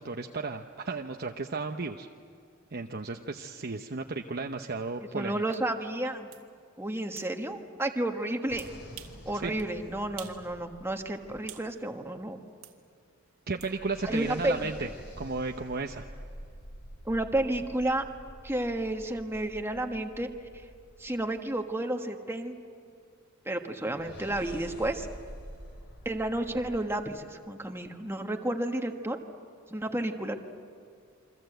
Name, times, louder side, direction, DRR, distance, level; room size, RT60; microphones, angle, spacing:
voice 1, 0.0-2.1 2.7-5.4 9.3-9.5 13.5-14.9 15.2-16.1, right 3 dB, 50° right, 3 dB, 0.9 m, -34 dB
voice 2, 5.1-6.3 6.8-8.6 9.2-12.4 14.0-14.7 17.0-18.0 18.4-20.3 21.0-22.5 23.4-25.1 26.0-29.2 29.7-30.4, right 1 dB, 10° right, 4 dB, 1.5 m, -31 dB
sound 1, 5.5-5.6 6.3-6.5 7.2-7.3 8.6-9.2 9.6-9.7 10.2-10.4 10.8-11.7 12.6-12.8 13.6-13.7, right 12 dB, 80° right, 2.0 m, -47 dB
sound 2, 8.5-12.0 13.5-21.5 23.9-27.0, equal, 60° left, 5.1 m, -47 dB
28.5 x 24.0 x 8.0 m, 2.2 s
head